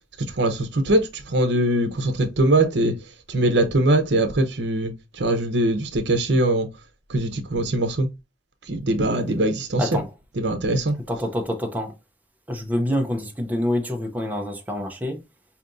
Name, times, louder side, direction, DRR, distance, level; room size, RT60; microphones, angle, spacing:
voice 1, 0.3-3.0 3.3-6.7 7.1-8.1 8.7-10.0 10.4-11.0, right 1 dB, 70° right, 0.8 m, -22 dB
voice 2, 9.8-10.1 11.1-11.9 12.5-15.2, left 1 dB, 10° right, 0.6 m, -26 dB
4.9 x 2.8 x 2.6 m
head